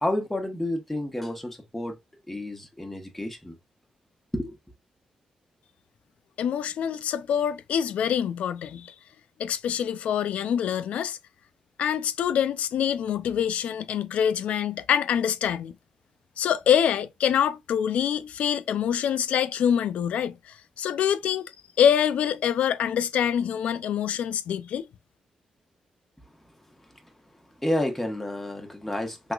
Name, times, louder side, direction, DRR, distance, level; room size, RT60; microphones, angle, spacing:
voice 1, 0.0-2.0 2.3-3.6 4.3-4.6 27.6-29.3, left 1 dB, 5° left, 1.0 m, -30 dB
voice 2, 6.4-8.9 9.4-11.2 11.8-15.7 16.4-21.5 21.8-24.9, left 9 dB, 85° left, 0.3 m, -25 dB
3.5 x 3.0 x 2.3 m
cardioid pair, 85°, 2 cm